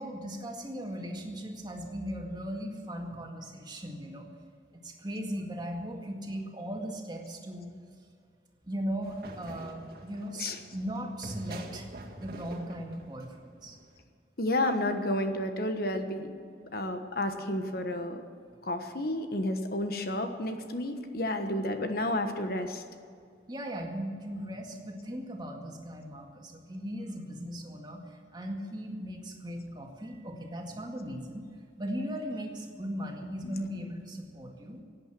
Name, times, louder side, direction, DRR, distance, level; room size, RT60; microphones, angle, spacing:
voice 1, 0.0-4.3 4.8-7.7 8.7-11.9 12.2-13.8 23.5-31.5 31.8-34.8, equal, 25° right, 1 dB, 1.9 m, -38 dB
sound 1, 9.0-13.9, right 1 dB, 60° right, 2.0 m, -45 dB
voice 2, 14.4-16.3 16.7-18.2 18.6-22.8 33.4-33.6, left 1 dB, 55° left, 7 dB, 1.2 m, -31 dB
17.0 x 8.9 x 7.6 m, 2.3 s
head